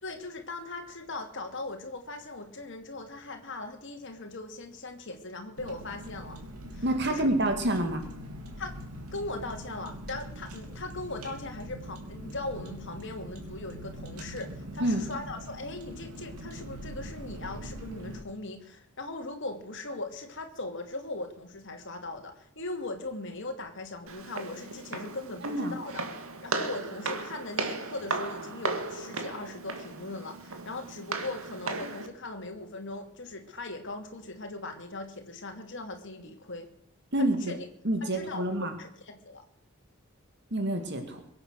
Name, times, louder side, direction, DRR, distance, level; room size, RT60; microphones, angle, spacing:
voice 1, 0.0-6.4 6.7-7.3 8.6-8.8 9.1-26.0 26.4-36.7 37.2-37.6 38.0-39.4, left 2 dB, 55° left, 5 dB, 2.6 m, -39 dB
Car, 5.6-18.2, equal, 90° right, 3.5 m, -42 dB
voice 2, 6.8-8.0 14.8-15.0 25.4-25.7 37.1-37.5 37.8-38.7 40.5-41.2, right 1 dB, 50° right, 6 dB, 2.3 m, -27 dB
Walk footsteps, 24.1-32.1, right 3 dB, 70° right, 2.1 m, -36 dB
23.0 x 8.9 x 6.5 m, 0.71 s
head